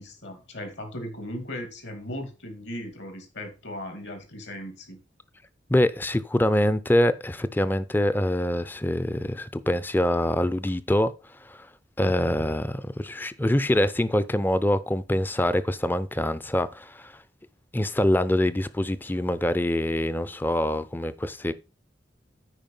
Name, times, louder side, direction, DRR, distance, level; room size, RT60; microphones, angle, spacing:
voice 1, 0.0-5.0, left 1 dB, 70° left, 2.6 m, -37 dB
voice 2, 5.7-11.1 11.5-11.6 12.0-17.1 17.7-21.5, left 1 dB, 10° left, 0.5 m, -24 dB
9.0 x 5.0 x 5.4 m
head